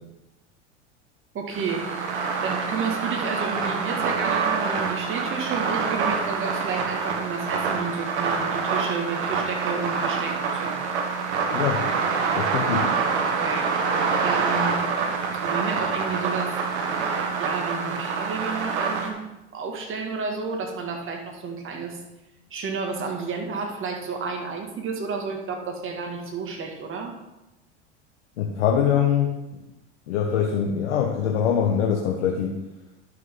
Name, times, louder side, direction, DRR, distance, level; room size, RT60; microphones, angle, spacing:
voice 1, 1.3-1.9 2.4-10.8 13.2-13.8 14.2-14.9 15.3-17.1 17.4-22.0 22.5-27.1, right 5 dB, 35° right, 2 dB, 2.0 m, -31 dB
sound 1, 1.5-19.1, right 5 dB, 70° right, 1.5 m, -26 dB
voice 2, 11.5-11.8 12.4-12.9 28.4-29.4 30.1-32.6, left 8 dB, 75° left, 1 dB, 1.1 m, -23 dB
11.5 x 6.2 x 3.7 m, 0.94 s
hypercardioid pair, 85°, 35 cm